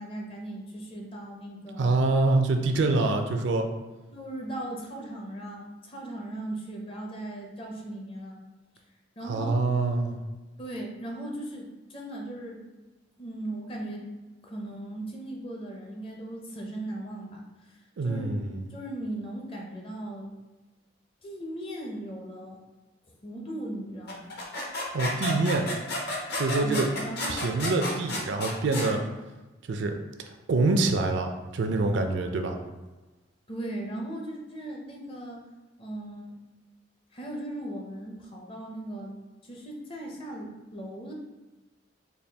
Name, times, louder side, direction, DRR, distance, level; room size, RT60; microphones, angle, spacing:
voice 1, 0.0-1.9 4.1-8.4 9.2-9.6 10.6-12.6 13.2-14.1 14.4-17.4 17.7-18.4 18.7-20.3 21.2-22.6 23.2-24.4 26.6-27.5 33.5-35.4 35.8-36.4 37.1-39.1 39.4-41.1, right 1 dB, 30° left, 0 dB, 0.6 m, -38 dB
voice 2, 1.8-3.7 9.2-10.2 18.0-18.6 24.9-25.7 26.4-26.9 27.3-29.0 29.7-30.0 30.5-32.6, right 3 dB, 65° right, 5 dB, 0.4 m, -25 dB
sound 1, 24.1-28.9, left 1 dB, 55° left, 0.8 m, -32 dB
4.1 x 2.3 x 3.3 m, 1.2 s
head